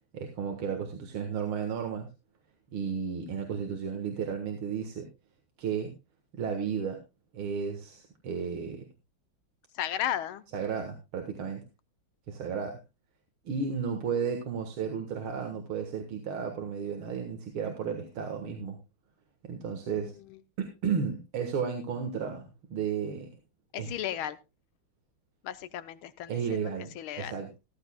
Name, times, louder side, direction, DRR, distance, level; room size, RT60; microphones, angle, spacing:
voice 1, 0.1-2.1 2.7-5.1 5.6-5.9 6.3-7.0 7.3-8.8 10.5-11.6 12.3-12.8 13.5-18.8 19.4-20.1 20.6-23.4 23.8-23.9 26.3-27.6, right 6 dB, 90° right, 5 dB, 2.4 m, -33 dB
voice 2, 9.7-10.4 20.0-20.1 23.7-24.4 25.4-26.6 26.9-27.4, left 11 dB, 85° left, 14 dB, 1.7 m, -34 dB
14.5 x 14.5 x 2.3 m, 0.25 s
omnidirectional pair, 2.2 m